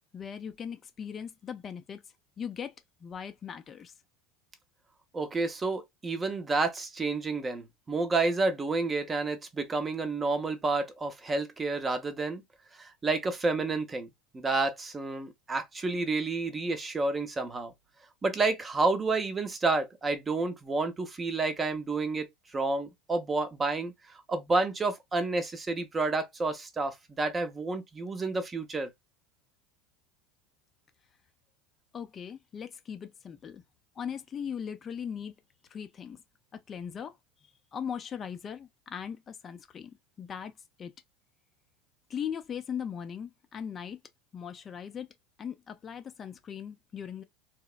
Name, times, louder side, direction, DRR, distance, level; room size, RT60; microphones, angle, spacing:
voice 1, 0.1-2.0 2.4-2.7 3.0-3.9 31.9-33.6 34.0-35.3 35.7-36.2 36.5-37.2 37.7-39.9 40.2-40.5 40.8-40.9 42.1-44.0 44.3-45.1 45.4-47.2, left 8 dB, 35° left, 0.4 m, -39 dB
voice 2, 5.1-12.4 12.8-14.1 14.3-17.7 18.2-22.3 22.5-23.9 24.3-28.9, right 3 dB, 20° right, 0.6 m, -30 dB
2.9 x 2.0 x 2.3 m
hypercardioid pair, 85°, 0 cm